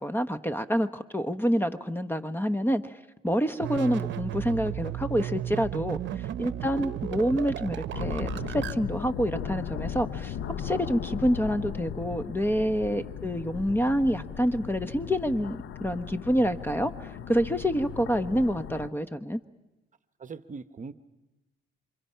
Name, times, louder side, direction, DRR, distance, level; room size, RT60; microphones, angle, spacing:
voice 1, 0.0-3.0 3.2-19.4, equal, 10° left, 12 dB, 1.1 m, -27 dB
sound 1, 3.6-8.7, right 11 dB, 65° right, 0.8 m, -34 dB
voice 2, 6.3-6.6 13.0-13.2 20.2-20.9, right 4 dB, 40° right, 12 dB, 1.0 m, -42 dB
sound 2, 7.9-18.9, left 8 dB, 75° left, 0.9 m, -37 dB
28.0 x 26.0 x 5.7 m, 1.1 s
cardioid pair, 90°, 20 cm